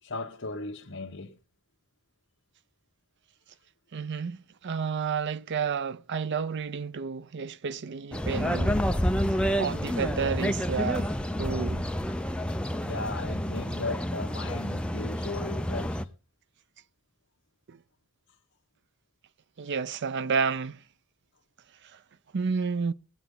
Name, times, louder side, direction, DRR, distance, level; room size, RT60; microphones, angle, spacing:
voice 1, 0.0-1.3 12.8-16.0, left 3 dB, 55° left, 1.2 m, -36 dB
voice 2, 3.9-8.8 9.6-11.9 17.7-17.8 19.6-20.8 21.8-22.0 22.3-22.9, right 5 dB, 55° right, 0.5 m, -31 dB
sound 1, 8.1-16.0, equal, 5° left, 0.6 m, -29 dB
19.5 x 8.1 x 3.8 m
head